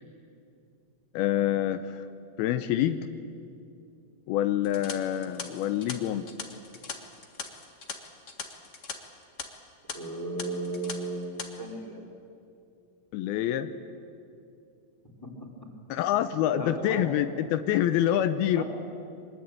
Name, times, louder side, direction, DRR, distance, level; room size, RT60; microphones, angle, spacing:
voice 1, 1.1-2.0 2.4-3.0 4.3-6.3 13.1-13.7 15.9-18.6, left 11 dB, 85° left, 10 dB, 2.7 m, -26 dB
sound 1, 4.6-8.9 9.2-9.4 9.9-10.0 10.4-10.9 11.2-11.5, left 4 dB, 60° left, 0.7 m, -39 dB
voice 2, 9.9-12.0 15.2-15.5 16.5-17.1 18.6-18.7, right 2 dB, 5° left, -1 dB, 3.2 m, -35 dB
24.0 x 20.5 x 8.9 m, 2.5 s
omnidirectional pair, 4.3 m